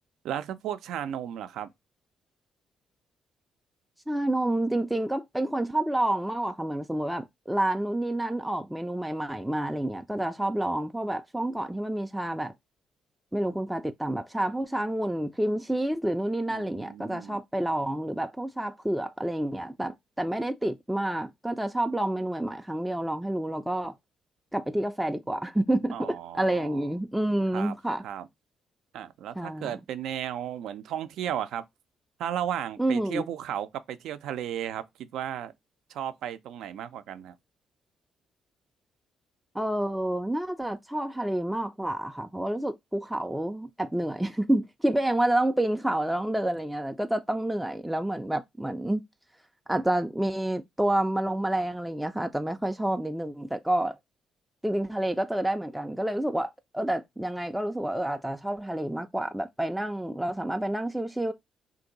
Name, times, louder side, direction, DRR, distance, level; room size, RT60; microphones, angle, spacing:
voice 1, 0.2-1.7 16.5-17.4 25.9-26.8 27.5-27.7 28.0-28.3 28.9-31.6 32.2-35.5 35.9-37.4, right 10 dB, 80° right, 0.4 m, -34 dB
voice 2, 4.1-12.5 13.3-23.9 24.5-28.0 29.4-29.7 32.8-33.3 39.5-49.0 49.7-54.0 54.6-61.3, right 1 dB, 5° right, 0.3 m, -29 dB
2.8 x 2.6 x 3.8 m
cardioid pair, 90°, 0 cm